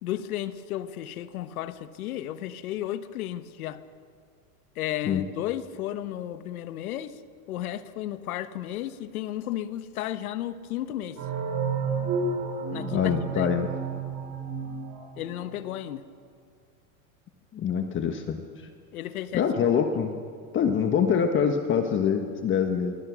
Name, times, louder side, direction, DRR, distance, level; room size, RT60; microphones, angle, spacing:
voice 1, 0.0-3.8 4.7-7.2 7.5-11.2 12.7-13.0 13.3-13.5 15.2-16.0 18.9-19.5, left 12 dB, 85° left, 1.4 m, -33 dB
sound 1, 11.2-15.7, right 5 dB, 40° right, 7.4 m, -31 dB
voice 2, 12.7-13.7 17.5-18.7 19.3-20.2 20.5-23.0, left 7 dB, 30° left, 1.4 m, -25 dB
26.0 x 23.0 x 6.3 m
supercardioid pair, 135°, 42 cm